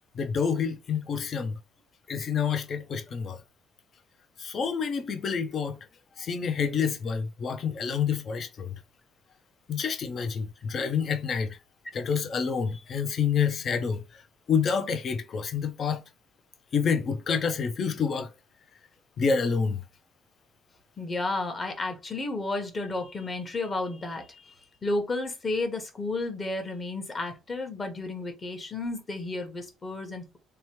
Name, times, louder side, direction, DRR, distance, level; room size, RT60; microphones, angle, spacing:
voice 1, 0.1-1.6 2.1-3.4 4.4-5.8 6.2-8.8 9.7-11.5 11.9-14.2 14.5-16.0 16.7-18.3 19.2-19.8, left 6 dB, 50° left, 0.5 m, -28 dB
voice 2, 21.0-24.5 24.8-30.4, left 2 dB, 30° left, 1.0 m, -32 dB
2.9 x 2.2 x 3.0 m
supercardioid pair, 80°, 0 cm